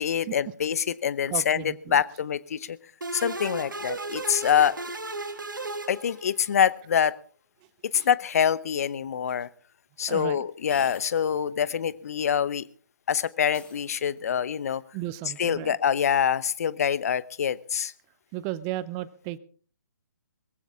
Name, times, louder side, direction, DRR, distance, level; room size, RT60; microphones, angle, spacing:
voice 1, 0.0-2.8 3.1-4.8 5.9-7.1 7.9-9.5 10.0-12.7 13.1-14.8 15.4-17.9, left 8 dB, 50° left, 18 dB, 0.9 m, -25 dB
voice 2, 1.3-2.0 7.9-8.1 10.1-10.4 14.9-15.8 18.3-19.4, right 15 dB, 20° right, 16 dB, 0.6 m, -34 dB
sound 1, 3.0-6.6, right 2 dB, 80° right, 1.9 m, -35 dB
sound 2, 9.3-9.4 10.7-11.4 11.8-11.9 13.5-14.4, left 4 dB, 10° left, 2.5 m, -48 dB
21.0 x 15.5 x 3.6 m, 0.42 s
figure-of-eight pair, 135°, 11 cm